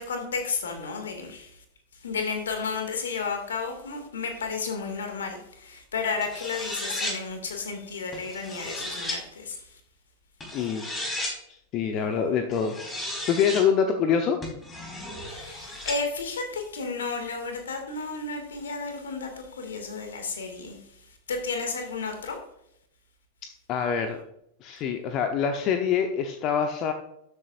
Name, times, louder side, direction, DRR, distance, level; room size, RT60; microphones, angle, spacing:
voice 1, 0.0-1.5 2.0-9.6 15.3-19.3 19.6-20.8 21.3-22.4, left 4 dB, 65° left, 4 dB, 2.2 m, -32 dB
sound 1, 6.2-7.2 8.1-9.2 10.4-11.4 12.5-13.7 14.4-16.0, left 1 dB, 15° left, 3.9 m, -34 dB
voice 2, 10.5-11.3 11.7-14.4 23.7-24.2 24.6-26.9, left 7 dB, 35° left, 6 dB, 0.9 m, -26 dB
12.5 x 8.3 x 2.6 m, 0.77 s
figure-of-eight pair, 90°, 0 cm